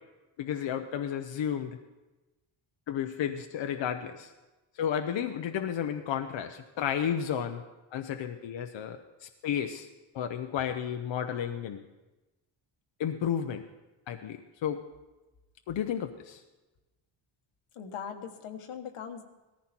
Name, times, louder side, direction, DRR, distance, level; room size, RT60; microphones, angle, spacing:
voice 1, 0.4-1.8 2.9-4.3 4.7-7.6 7.9-9.9 10.1-11.8 13.0-13.6 14.1-14.8 15.7-16.4, left 9 dB, 60° left, 6 dB, 0.8 m, -32 dB
voice 2, 17.7-19.2, left 7 dB, 85° left, 5 dB, 1.7 m, -40 dB
18.5 x 14.5 x 4.4 m, 1.1 s
wide cardioid pair, 175°, 49 cm